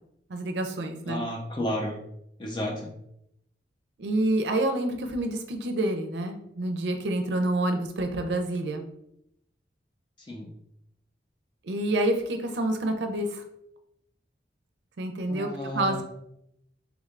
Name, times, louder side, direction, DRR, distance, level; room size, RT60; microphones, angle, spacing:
voice 1, 0.3-1.2 4.0-8.9 11.6-13.4 15.0-15.5 15.7-16.0, right 1 dB, 75° right, 6 dB, 0.5 m, -28 dB
voice 2, 1.1-2.0 2.4-2.9 10.3-10.5 15.3-16.0, equal, 25° left, 0 dB, 0.6 m, -32 dB
3.5 x 3.2 x 2.4 m, 0.76 s
head